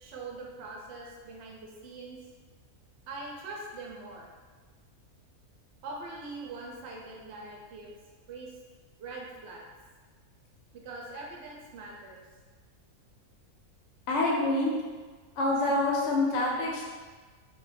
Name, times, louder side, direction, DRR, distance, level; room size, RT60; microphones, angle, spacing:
voice 1, 0.0-2.2 3.1-4.3 5.8-7.9 8.3-8.6 9.0-9.7 10.7-12.2, right 3 dB, 65° right, -2 dB, 0.7 m, -42 dB
voice 2, 14.1-14.7 15.3-16.8, left 2 dB, 65° left, -2 dB, 0.8 m, -26 dB
2.4 x 2.1 x 3.2 m, 1.4 s
omnidirectional pair, 1.5 m